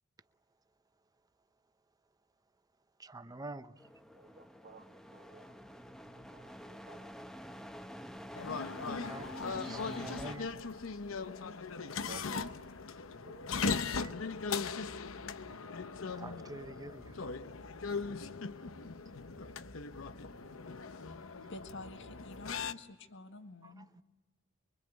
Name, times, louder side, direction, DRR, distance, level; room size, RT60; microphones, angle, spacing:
voice 1, 3.0-3.7 8.9-9.3 9.6-10.5 13.7-14.2 16.0-17.2 23.6-24.0, right 2 dB, 20° right, 0.9 m, -47 dB
sound 1, 3.8-10.4, equal, ahead, 1.1 m, -47 dB
voice 2, 4.1-5.6 6.3-7.1 11.8-13.4, right 4 dB, 45° right, 1.9 m, -55 dB
sound 2, 8.4-22.7, left 4 dB, 85° left, 0.9 m, -39 dB
sound 3, 13.1-22.7, equal, 25° left, 1.6 m, -58 dB
voice 3, 21.5-23.9, left 2 dB, 65° left, 1.8 m, -49 dB
24.5 x 23.5 x 9.5 m
head